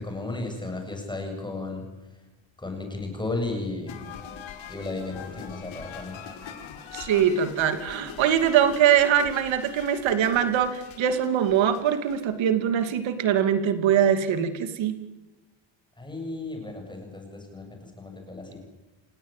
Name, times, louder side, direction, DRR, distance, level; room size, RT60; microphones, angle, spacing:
voice 1, 0.0-2.2 2.6-4.1 4.7-6.2 16.0-18.6, left 2 dB, 10° left, 3 dB, 7.7 m, -34 dB
sound 1, 3.9-12.4, left 8 dB, 85° left, 4.7 m, -43 dB
voice 2, 6.9-15.0, right 9 dB, 80° right, 9 dB, 2.7 m, -23 dB
29.5 x 18.0 x 9.1 m, 1.1 s
cardioid pair, 170°, 46 cm